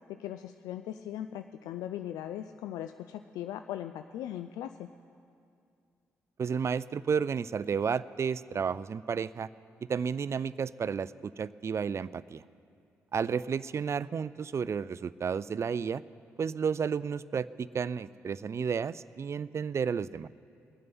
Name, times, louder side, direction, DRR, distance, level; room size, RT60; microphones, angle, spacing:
voice 1, 0.1-4.9, left 11 dB, 80° left, 9 dB, 0.3 m, -39 dB
voice 2, 6.4-9.5 9.9-11.1 11.4-12.4 13.1-16.0 16.4-20.3, right 6 dB, 45° right, 18 dB, 0.4 m, -32 dB
21.5 x 7.6 x 6.0 m, 2.4 s
hypercardioid pair, 45°, 6 cm